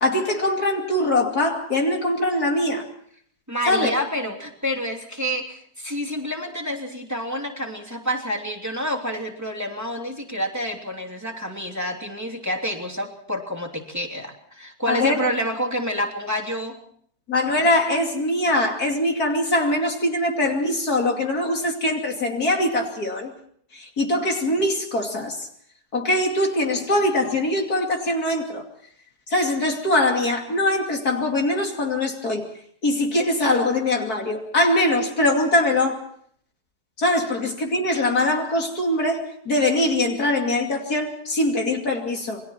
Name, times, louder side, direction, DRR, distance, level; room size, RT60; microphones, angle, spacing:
voice 1, 0.0-2.9 3.7-4.0 14.9-15.2 17.3-23.3 23.7-25.5 25.9-28.6 29.3-32.4 32.8-36.0 37.0-42.4, left 1 dB, 65° left, 2 dB, 3.2 m, -22 dB
voice 2, 3.5-16.8, equal, 10° right, 1 dB, 3.0 m, -28 dB
28.0 x 22.0 x 4.4 m, 0.62 s
omnidirectional pair, 1.8 m